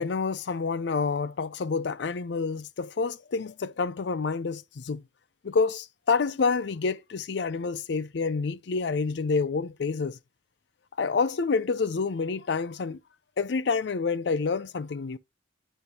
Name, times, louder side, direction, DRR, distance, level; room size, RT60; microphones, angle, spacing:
voice 1, 0.0-5.0 5.4-10.2 11.0-13.0 13.4-15.2, left 4 dB, 60° left, 0.4 m, -28 dB
9.0 x 5.3 x 2.9 m
head